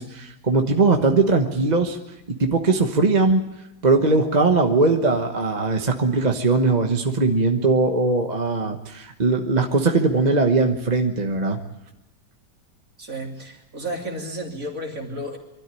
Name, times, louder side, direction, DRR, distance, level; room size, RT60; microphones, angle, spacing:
voice 1, 0.0-2.0 2.3-3.4 3.8-11.6, right 3 dB, 25° right, 4 dB, 1.2 m, -20 dB
voice 2, 13.0-15.4, right 1 dB, 50° right, 1 dB, 3.3 m, -32 dB
25.0 x 13.0 x 9.9 m, 0.97 s
omnidirectional pair, 1.8 m